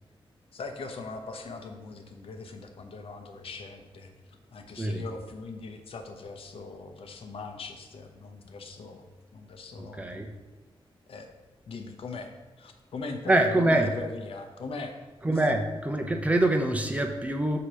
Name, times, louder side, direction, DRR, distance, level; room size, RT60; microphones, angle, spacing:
voice 1, 0.5-4.1 4.5-9.1 9.3-10.2 11.1-11.3 11.7-12.3 12.6-14.9, left 3 dB, 70° left, 5 dB, 0.9 m, -40 dB
voice 2, 9.8-10.3 13.3-13.9 15.2-17.6, right 1 dB, 15° right, 4 dB, 0.7 m, -25 dB
8.1 x 2.9 x 6.2 m, 1.2 s
wide cardioid pair, 145°, 10 cm